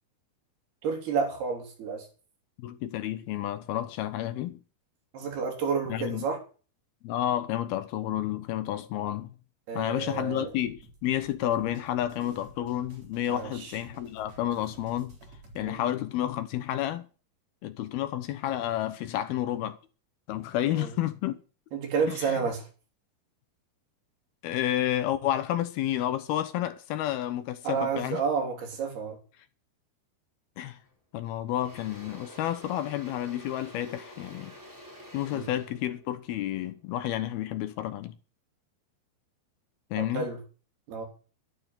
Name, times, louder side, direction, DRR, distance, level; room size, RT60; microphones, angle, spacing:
voice 1, 0.8-2.1 5.1-6.4 9.7-10.5 11.4-11.6 13.3-13.8 15.6-15.8 20.6-20.9 21.7-22.7 27.6-29.2 35.3-35.5 40.0-40.4 40.9-41.1, right 5 dB, 70° right, 5.6 m, -30 dB
voice 2, 2.6-4.6 5.9-6.2 7.0-9.3 9.7-15.2 15.6-17.1 17.6-19.8 20.3-21.4 22.1-22.3 24.4-28.2 30.6-30.8 31.1-34.5 35.1-38.2 39.9-40.3, left 12 dB, 75° left, 2.8 m, -30 dB
sound 1, 10.1-15.7, right 2 dB, 40° right, 4.9 m, -52 dB
Engine / Drill, 30.7-30.9 31.2-37.4, equal, 5° right, 4.3 m, -49 dB
12.5 x 11.5 x 5.9 m
omnidirectional pair, 4.7 m